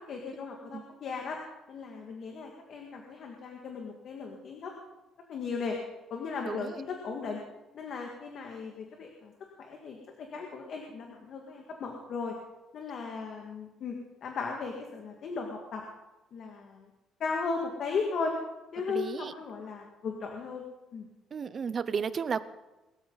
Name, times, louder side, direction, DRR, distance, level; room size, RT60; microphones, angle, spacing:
voice 1, 0.1-1.4 1.7-4.7 5.3-5.8 6.1-7.4 7.7-9.3 9.6-12.3 12.7-15.8 16.3-16.8 17.2-18.3 18.7-20.6 20.9-21.1, left 4 dB, 45° left, 1 dB, 2.0 m, -36 dB
voice 2, 6.5-6.8 18.9-19.3 21.3-22.4, right 6 dB, 30° right, 14 dB, 0.7 m, -33 dB
22.5 x 13.5 x 4.1 m, 1.1 s
cardioid pair, 165°, 0 cm